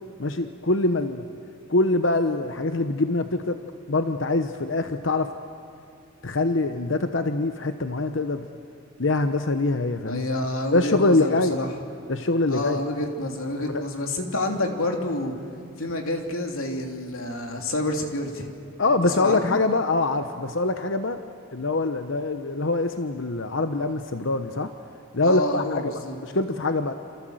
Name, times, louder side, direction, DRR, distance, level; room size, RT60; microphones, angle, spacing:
voice 1, 0.2-1.3 1.7-3.6 3.9-5.3 6.2-8.5 9.0-10.3 10.7-11.6 12.1-12.8 13.6-13.8 18.8-21.2 21.5-24.7 25.1-25.9 26.2-26.9, left 2 dB, 60° left, 8 dB, 1.0 m, -24 dB
voice 2, 10.0-11.7 12.5-15.3 15.8-18.5 19.0-19.6 25.2-26.2, left 1 dB, 75° left, 3 dB, 3.0 m, -28 dB
28.0 x 26.5 x 7.9 m, 2.5 s
head